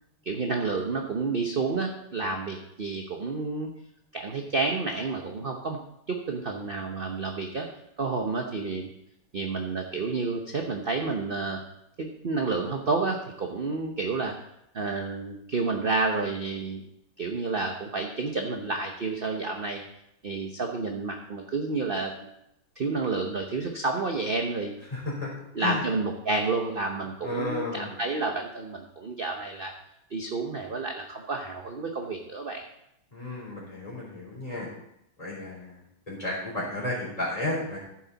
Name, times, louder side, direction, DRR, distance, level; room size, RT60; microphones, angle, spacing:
voice 1, 0.2-3.7 4.1-5.8 6.1-7.7 8.0-8.9 9.3-11.6 12.0-14.3 14.7-16.8 17.2-19.8 20.2-22.2 22.8-24.7 25.5-29.7 30.1-32.6, right 3 dB, 40° right, 3 dB, 0.9 m, -30 dB
voice 2, 24.9-25.3 25.6-25.8 27.2-27.9 33.1-34.7 35.2-37.8, left 2 dB, 20° left, -4 dB, 3.8 m, -33 dB
14.5 x 7.4 x 4.1 m, 0.80 s
omnidirectional pair, 2.0 m